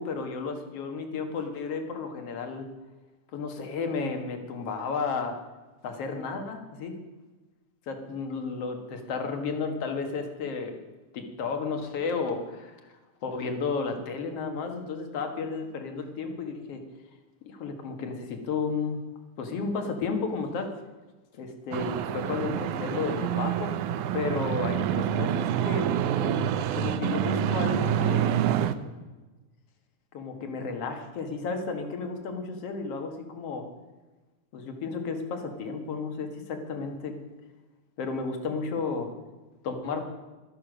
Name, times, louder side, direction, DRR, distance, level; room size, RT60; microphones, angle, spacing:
voice 1, 0.0-2.7 3.3-5.4 5.8-7.0 7.9-10.7 11.1-12.9 13.2-16.8 17.5-19.0 19.4-20.7 21.3-23.8 24.1-25.9 26.1-26.4 26.7-28.3 30.1-33.7 34.5-37.2 38.0-39.1 39.6-40.0, left 4 dB, 55° left, 5 dB, 2.5 m, -32 dB
sound 1, 21.7-28.7, right 10 dB, 85° right, 2.2 m, -27 dB
13.0 x 12.0 x 6.3 m, 1.2 s
omnidirectional pair, 3.4 m